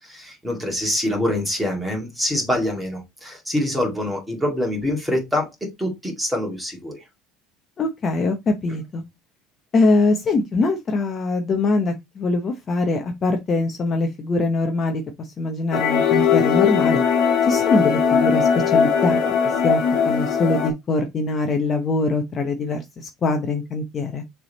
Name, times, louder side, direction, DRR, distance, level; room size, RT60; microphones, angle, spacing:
voice 1, 0.0-5.5 5.8-7.0, left 1 dB, 5° right, 2.1 m, -25 dB
voice 2, 7.8-9.0 9.7-17.0 17.4-19.2 19.6-24.2, left 3 dB, 25° left, 0.8 m, -23 dB
sound 1, 15.7-20.7, left 7 dB, 55° left, 1.5 m, -19 dB
6.7 x 3.4 x 4.1 m
cardioid pair, 160°, 0 cm